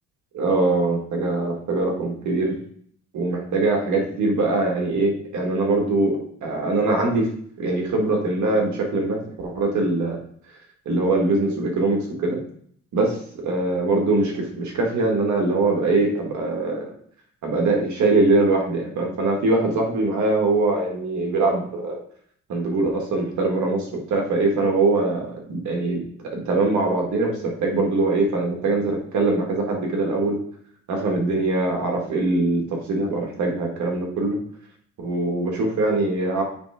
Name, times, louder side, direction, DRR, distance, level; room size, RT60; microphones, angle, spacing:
voice 1, 0.3-2.6 3.1-7.3 7.6-10.2 10.9-12.4 12.9-13.2 13.4-16.9 17.4-22.0 22.5-26.0 26.3-30.4 30.9-34.4 35.0-36.4, right 2 dB, 70° right, 0 dB, 1.9 m, -22 dB
8.8 x 3.4 x 5.0 m, 0.62 s
cardioid pair, 90°, 30 cm